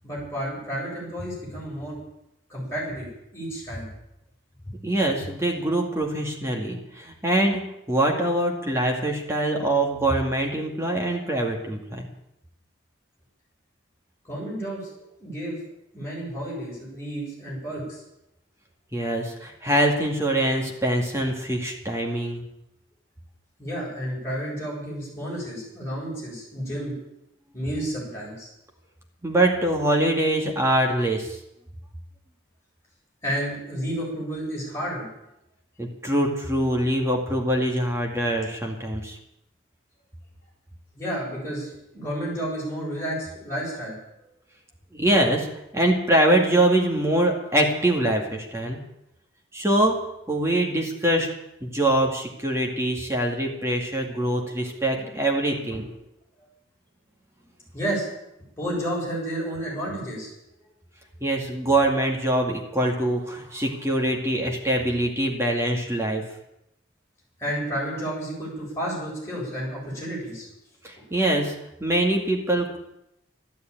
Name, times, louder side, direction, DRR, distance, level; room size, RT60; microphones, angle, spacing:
voice 1, 0.0-2.0 2.5-3.9 4.6-4.8 14.2-15.6 15.9-18.0 23.6-27.0 27.5-28.5 33.2-35.1 40.9-44.0 54.1-54.4 54.9-55.1 55.7-55.9 56.4-56.5 57.7-58.1 58.5-60.3 67.4-70.5 70.9-71.1, right 1 dB, 15° left, -5 dB, 8.0 m, -31 dB
voice 2, 4.8-12.1 18.9-22.4 29.2-31.4 35.8-39.2 44.9-45.5 45.7-48.8 49.5-50.0 50.3-51.3 51.6-55.9 61.2-66.2 70.8-72.8, right 1 dB, 15° right, 1 dB, 2.1 m, -24 dB
12.5 x 12.0 x 8.9 m, 0.85 s
head